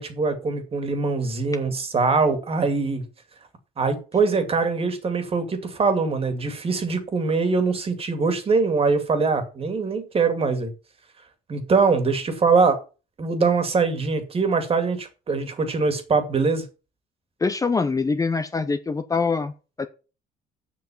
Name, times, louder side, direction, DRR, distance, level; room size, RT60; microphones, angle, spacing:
voice 1, 0.0-3.0 3.8-10.7 11.5-12.8 13.2-16.6, right 4 dB, 35° right, 2.3 m, -23 dB
voice 2, 17.4-19.5 19.8-19.9, left 4 dB, 20° left, 0.8 m, -24 dB
7.6 x 5.8 x 7.2 m
cardioid pair, 110°, 17 cm